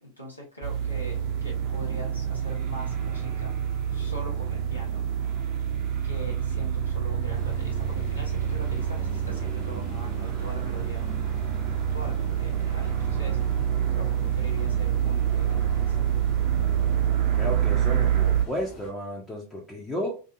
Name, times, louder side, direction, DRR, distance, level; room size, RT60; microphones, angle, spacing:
voice 1, 0.0-3.6 3.9-5.0 6.0-11.1 11.9-16.1, right 1 dB, 85° left, -3 dB, 1.2 m, -42 dB
sound 1, 0.6-18.5, right 9 dB, 35° right, 0.5 m, -27 dB
sound 2, 7.3-18.9, left 2 dB, 35° left, 1.4 m, -45 dB
voice 2, 17.3-20.2, equal, 10° left, -2 dB, 0.6 m, -33 dB
2.6 x 2.4 x 2.5 m, 0.32 s
figure-of-eight pair, 90°, 0 cm